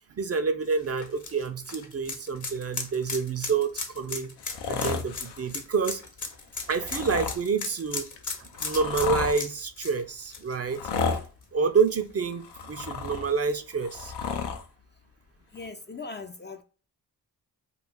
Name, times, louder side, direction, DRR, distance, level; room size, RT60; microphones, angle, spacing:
voice 1, 0.2-3.7 3.9-4.3 4.7-6.0 6.7-8.1 8.4-10.8 11.5-14.1, right 5 dB, 35° right, 0.5 m, -28 dB
sound 1, 0.7-11.4 11.8-11.9 13.4-13.5, left 4 dB, 45° left, 0.9 m, -37 dB
sound 2, 4.4-5.5 6.6-7.4 8.2-9.4 10.6-11.3 12.2-13.4 13.7-14.6 15.6-15.7, left 5 dB, 75° left, 0.6 m, -32 dB
voice 2, 15.5-16.6, left 4 dB, 25° left, 0.4 m, -39 dB
2.4 x 2.3 x 3.5 m
supercardioid pair, 45°, 41 cm